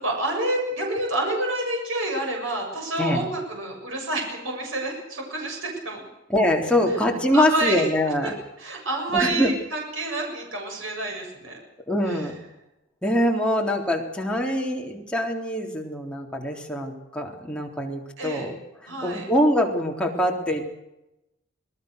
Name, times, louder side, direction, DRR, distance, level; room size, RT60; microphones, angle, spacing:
voice 1, 0.0-6.0 7.3-7.8 8.6-11.6 12.1-12.2 18.2-18.5 18.9-19.3, right 2 dB, 85° right, 1 dB, 7.4 m, -28 dB
voice 2, 6.3-8.3 9.1-9.5 11.9-12.4 13.0-18.6 19.0-20.7, left 1 dB, 5° left, -1 dB, 3.7 m, -24 dB
27.0 x 19.0 x 6.6 m, 0.92 s
head